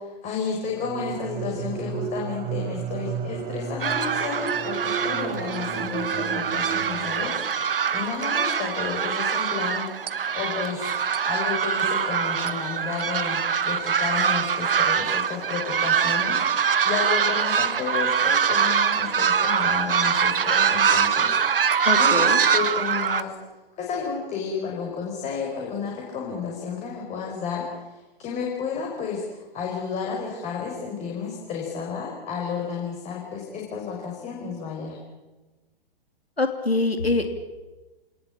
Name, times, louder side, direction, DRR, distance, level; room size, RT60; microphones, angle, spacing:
voice 1, 0.0-10.9 11.3-23.3 23.7-35.0, left 6 dB, 25° left, -1 dB, 5.4 m, -32 dB
sound 1, 0.7-7.6, right 7 dB, 25° right, 1.5 m, -33 dB
sound 2, 3.8-23.2, right 7 dB, 65° right, 1.5 m, -23 dB
voice 2, 21.8-22.4 36.4-37.3, left 2 dB, 90° left, 6 dB, 3.1 m, -24 dB
28.0 x 19.5 x 8.9 m, 1.2 s
figure-of-eight pair, 115°, 30 cm